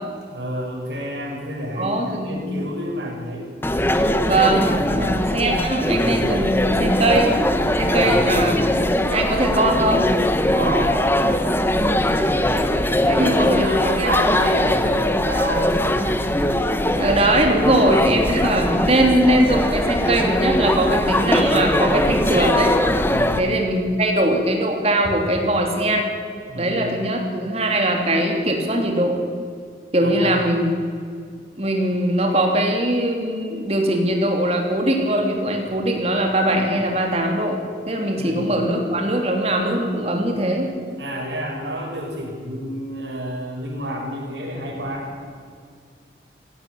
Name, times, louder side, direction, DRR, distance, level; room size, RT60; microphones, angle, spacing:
voice 1, 0.3-3.5 4.9-5.1 8.0-8.4 10.5-11.0 13.0-15.7 23.1-23.5 26.5-27.0 30.0-30.4 38.2-38.6 41.0-45.1, equal, 70° right, -2 dB, 7.0 m, -29 dB
voice 2, 1.8-2.4 4.2-7.3 7.8-8.6 9.1-10.1 13.1-13.6 14.0-14.1 16.9-22.7 23.4-26.1 26.5-29.1 29.9-30.7 31.6-37.6 37.9-40.7, right 1 dB, 35° right, 2 dB, 3.2 m, -21 dB
sound 1, 3.6-23.4, left 1 dB, 10° left, 1.0 m, -20 dB
17.5 x 17.0 x 8.8 m, 2.1 s
head